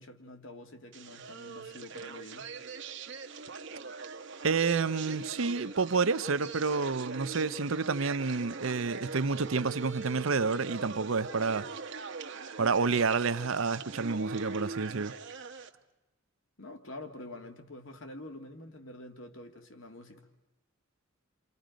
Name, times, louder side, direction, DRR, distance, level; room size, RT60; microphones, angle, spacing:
voice 1, 0.0-2.5 16.6-20.3, left 1 dB, 70° left, 2.0 m, -47 dB
sound 1, 0.9-15.7, right 4 dB, 60° right, 1.0 m, -42 dB
voice 2, 4.4-11.7 12.6-15.1, right 4 dB, 80° right, 0.7 m, -29 dB
29.0 x 27.0 x 5.1 m
head